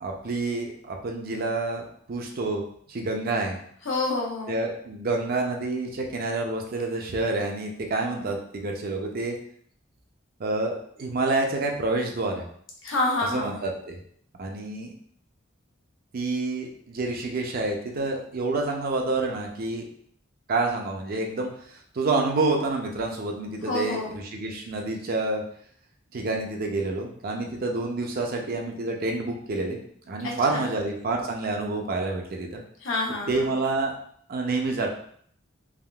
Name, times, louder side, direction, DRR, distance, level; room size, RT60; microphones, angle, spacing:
voice 1, 0.0-2.6 2.9-3.6 4.5-9.4 10.4-12.4 13.3-14.0 14.4-14.9 16.1-19.8 20.5-21.5 21.9-25.4 26.1-29.8 30.1-32.6 33.3-33.9 34.3-34.9, right 3 dB, 50° right, 2 dB, 0.5 m, -28 dB
voice 2, 3.8-4.6 12.8-13.6 23.6-24.2 30.2-30.7 32.8-33.5, left 2 dB, 80° left, -2 dB, 0.8 m, -28 dB
3.4 x 2.3 x 2.3 m, 0.62 s
head